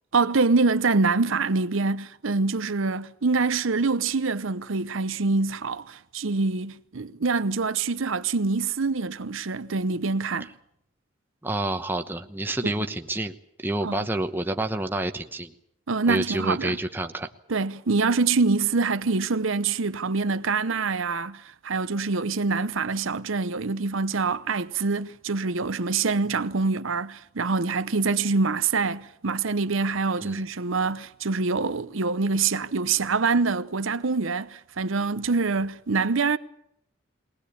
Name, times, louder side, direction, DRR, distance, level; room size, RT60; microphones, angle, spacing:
voice 1, 0.1-10.5 12.6-12.7 13.8-14.0 15.9-16.8 17.5-36.4, right 4 dB, 75° right, 0.8 m, -25 dB
voice 2, 11.4-13.3 13.6-15.5 16.1-17.3 30.2-30.4, right 1 dB, 10° right, 1.0 m, -28 dB
22.0 x 18.5 x 8.5 m
head